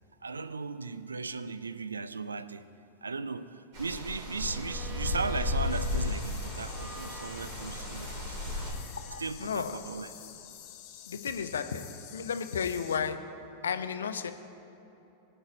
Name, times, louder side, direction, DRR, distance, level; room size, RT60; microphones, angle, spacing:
voice 1, 0.2-2.7 3.0-8.4 9.1-10.1, right 4 dB, 75° right, 14 dB, 0.4 m, -37 dB
sound 1, 3.7-8.7, left 2 dB, 50° right, 2.7 m, -34 dB
Bowed string instrument, 4.4-9.3, right 3 dB, 20° right, 2.3 m, -49 dB
sound 2, 5.7-13.0, left 10 dB, 45° left, 1.0 m, -49 dB
voice 2, 9.1-9.7 11.1-11.9 12.1-13.2 13.6-14.3, left 7 dB, 65° left, 9 dB, 0.6 m, -33 dB
22.0 x 8.9 x 2.6 m, 3.0 s
figure-of-eight pair, 90°, 0 cm